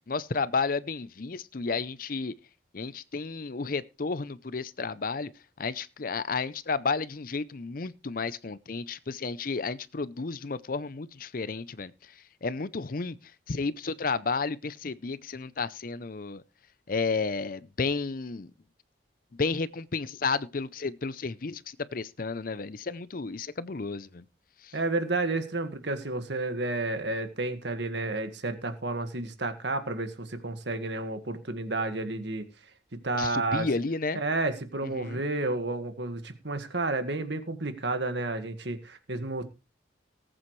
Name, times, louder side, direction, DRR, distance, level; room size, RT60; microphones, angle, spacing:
voice 1, 0.1-2.3 2.7-5.3 5.6-11.9 12.4-13.2 13.5-16.4 16.9-18.5 19.4-24.2 33.2-34.2 35.0-35.2, left 4 dB, 50° left, 0.6 m, -32 dB
voice 2, 24.7-32.5 33.0-33.7 34.2-39.4, right 2 dB, 70° right, 1.8 m, -31 dB
19.0 x 8.7 x 3.2 m
head